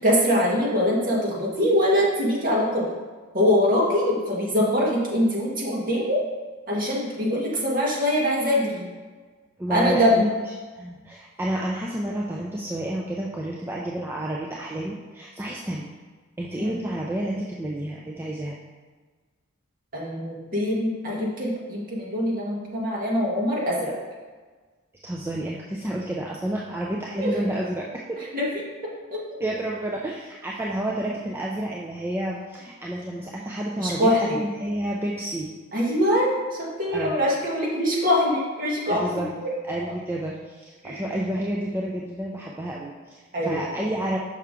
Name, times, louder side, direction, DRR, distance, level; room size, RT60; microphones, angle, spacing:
voice 1, 0.0-2.8 3.3-6.2 6.7-8.9 9.7-10.3 16.6-16.8 19.9-23.9 27.2-27.3 28.3-28.4 33.8-34.4 35.7-39.5 40.8-41.0 43.3-43.6, equal, 40° right, -4 dB, 1.6 m, -23 dB
voice 2, 9.6-10.3 10.7-16.0 16.4-18.6 25.0-28.2 29.4-35.5 36.9-37.2 38.9-39.3 39.6-44.2, right 1 dB, 10° right, -4 dB, 0.4 m, -30 dB
5.9 x 5.7 x 3.7 m, 1.4 s
head